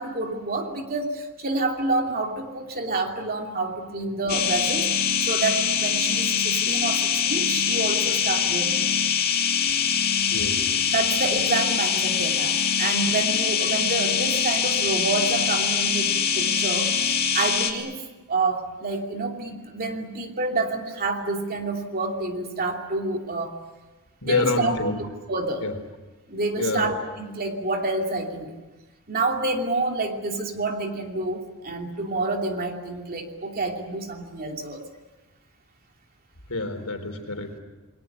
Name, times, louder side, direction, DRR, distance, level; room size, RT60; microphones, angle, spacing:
voice 1, 0.0-4.9 5.2-8.8 10.9-18.0 18.3-23.5 24.2-24.7 25.3-25.7 26.3-28.6 29.1-34.8, right 3 dB, 40° right, 3 dB, 2.8 m, -28 dB
sound 1, 4.3-17.7, left 7 dB, 45° left, 2.6 m, -23 dB
voice 2, 10.3-10.7 24.2-25.0 25.6-25.7 26.6-26.9 36.5-37.6, left 2 dB, 70° left, 6 dB, 3.8 m, -26 dB
29.0 x 21.5 x 8.1 m, 1.2 s
head